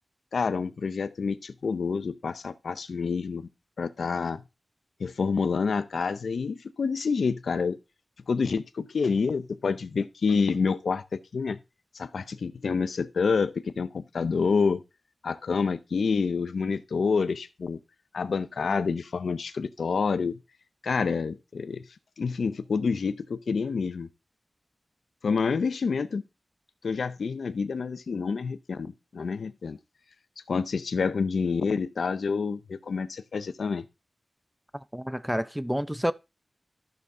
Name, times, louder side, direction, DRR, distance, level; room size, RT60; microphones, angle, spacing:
voice 1, 0.3-3.5 3.8-4.4 5.0-7.8 8.3-11.6 11.9-14.8 15.2-17.8 18.1-20.4 20.8-21.8 22.2-24.1 25.2-26.2 26.8-29.8 30.5-33.8, left 5 dB, 85° left, 0.6 m, -28 dB
voice 2, 34.9-36.1, equal, 5° right, 0.5 m, -29 dB
13.5 x 6.8 x 3.7 m
cardioid pair, 45°, 0 cm